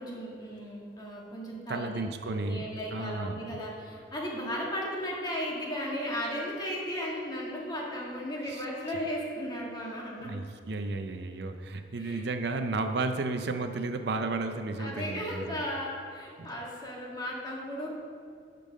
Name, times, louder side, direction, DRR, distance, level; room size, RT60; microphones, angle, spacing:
voice 1, 0.0-2.0 2.3-10.3 12.0-12.3 14.8-17.9, equal, 25° left, -4 dB, 1.9 m, -35 dB
voice 2, 1.7-3.6 8.5-8.6 10.2-15.6 16.4-16.5, right 3 dB, 65° right, 7 dB, 0.6 m, -33 dB
11.5 x 5.4 x 5.3 m, 2.4 s
head